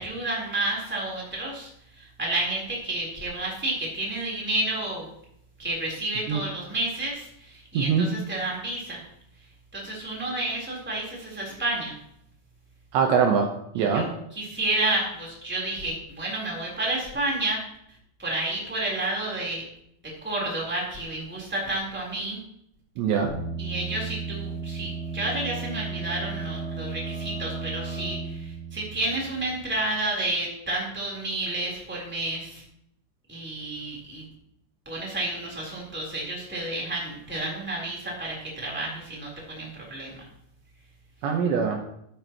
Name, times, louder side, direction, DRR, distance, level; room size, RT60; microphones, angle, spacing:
voice 1, 0.0-1.7 2.0-5.1 5.6-9.0 9.7-11.9 13.7-14.0 14.3-17.6 18.2-19.6 20.2-22.4 23.6-32.6 33.3-34.2 34.8-40.2, right 2 dB, 5° right, -4 dB, 2.8 m, -30 dB
voice 2, 7.7-8.1 12.9-13.5 13.8-14.1 23.0-23.4 41.2-41.8, right 6 dB, 75° right, 3 dB, 3.0 m, -22 dB
sound 1, 23.3-29.9, right 4 dB, 35° right, 5.6 m, -34 dB
12.5 x 12.0 x 3.1 m, 0.75 s
omnidirectional pair, 5.7 m